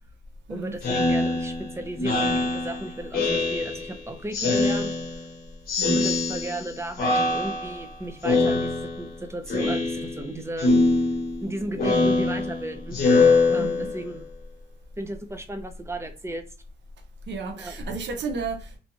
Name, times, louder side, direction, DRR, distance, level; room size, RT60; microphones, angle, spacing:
voice 1, 0.5-5.0 5.8-10.7 11.4-13.0 13.5-14.3 15.0-16.4 17.6-17.7, right 1 dB, 15° right, 7 dB, 0.5 m, -34 dB
Speech synthesizer, 0.8-4.0 4.3-5.3 5.7-6.7 7.0-7.9 8.2-9.1 9.5-10.3 10.6-14.1, left 3 dB, 45° left, 1.0 m, -23 dB
voice 2, 5.8-6.1 10.3-10.5 13.6-13.9 17.3-18.8, right 4 dB, 60° right, 4 dB, 0.7 m, -33 dB
2.6 x 2.2 x 2.9 m, 0.35 s
cardioid pair, 90°, 20 cm